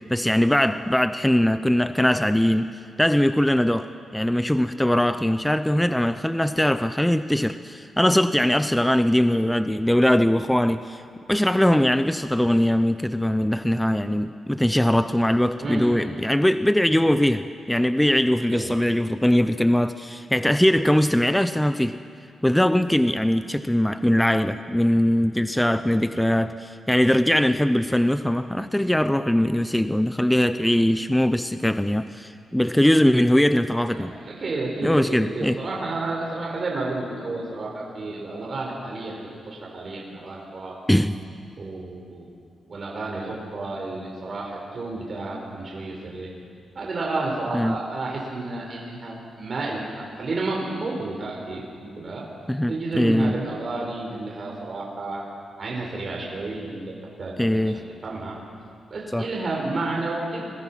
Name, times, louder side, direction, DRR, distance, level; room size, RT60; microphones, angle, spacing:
voice 1, 0.1-2.7 3.0-11.0 11.3-22.0 22.4-34.2 34.8-35.6 40.9-41.2 47.5-47.8 52.5-53.4 57.4-57.8 59.1-59.3, left 1 dB, 5° left, 10 dB, 0.6 m, -21 dB
voice 2, 15.6-16.0 18.5-18.7 33.9-40.7 41.6-42.3 42.7-46.3 46.7-52.2 52.7-55.2 55.6-56.8 57.2-58.3 58.9-60.5, right 2 dB, 40° right, -2 dB, 4.9 m, -31 dB
29.5 x 22.0 x 5.8 m, 2.4 s
wide cardioid pair, 125°, 0 cm